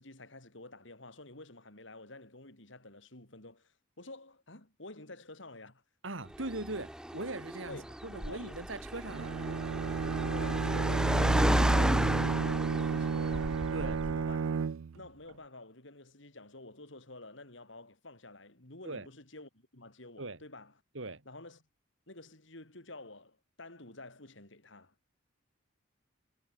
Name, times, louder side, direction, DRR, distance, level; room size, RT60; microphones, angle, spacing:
voice 1, 0.0-5.8 7.7-8.6 10.3-14.6 14.9-20.7 21.3-21.6 22.1-24.9, left 2 dB, 65° left, 4.3 m, -50 dB
voice 2, 6.0-9.4 13.7-14.0 18.8-19.1 20.2-20.4 20.9-21.2, right 2 dB, 70° right, 2.5 m, -40 dB
Car, 6.3-14.3, equal, 5° right, 0.3 m, -31 dB
Bowed string instrument, 9.1-15.1, right 6 dB, 85° right, 0.4 m, -33 dB
head